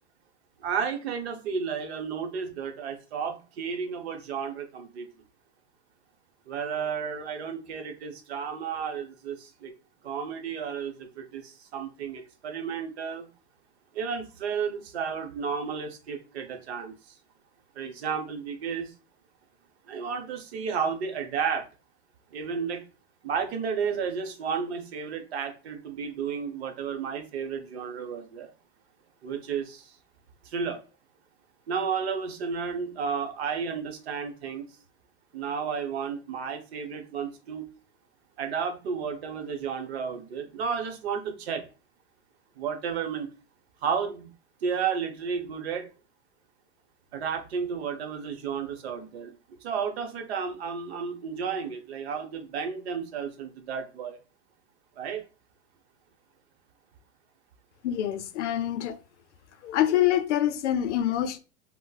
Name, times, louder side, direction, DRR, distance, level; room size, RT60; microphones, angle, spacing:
voice 1, 0.6-5.1 6.5-9.7 10.0-13.3 13.9-16.9 17.8-18.9 19.9-21.7 22.3-22.8 23.2-28.5 29.2-29.9 30.4-30.8 31.7-34.7 35.3-37.7 38.4-41.6 42.6-43.3 43.8-44.3 44.6-45.9 47.1-49.3 49.6-54.2 55.0-55.2, right 6 dB, 65° right, 0.7 m, -32 dB
voice 2, 57.8-59.0 59.6-61.4, left 12 dB, 85° left, 0.5 m, -25 dB
4.0 x 2.0 x 2.3 m
supercardioid pair, 175°, 35 cm